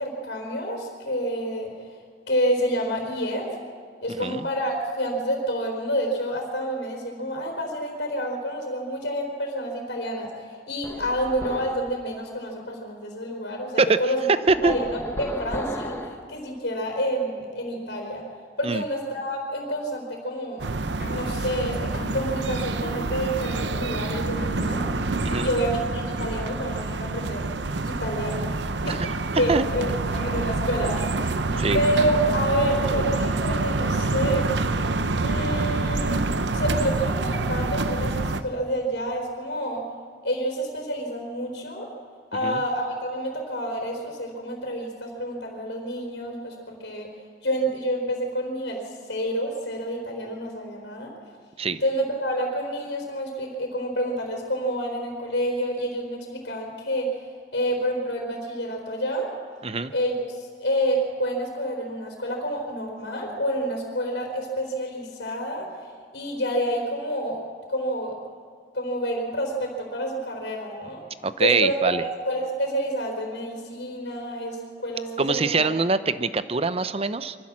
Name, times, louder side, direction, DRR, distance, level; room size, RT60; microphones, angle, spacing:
voice 1, 0.0-2.0 2.3-3.6 4.0-14.3 14.6-18.3 18.6-20.6 21.1-24.9 25.4-27.5 27.8-28.5 28.8-29.0 29.4-31.4 31.7-34.6 35.2-36.2 36.5-39.8 40.2-41.9 42.3-47.1 47.4-51.1 51.8-59.3 59.9-65.9 66.1-67.4 67.7-68.2 68.7-71.0 71.4-75.7, equal, 80° left, 0 dB, 4.1 m, -28 dB
sound 1, 10.8-11.9 14.5-16.2, left 1 dB, 15° left, 1.5 m, -35 dB
sound 2, 20.6-38.4, right 3 dB, 85° right, 0.9 m, -27 dB
sound 3, 21.0-28.8 30.1-35.3, right 1 dB, 55° left, 3.4 m, -41 dB
voice 2, 71.2-72.0 75.2-77.4, right 4 dB, 35° right, 13 dB, 0.7 m, -23 dB
24.0 x 15.0 x 7.5 m, 2.1 s
head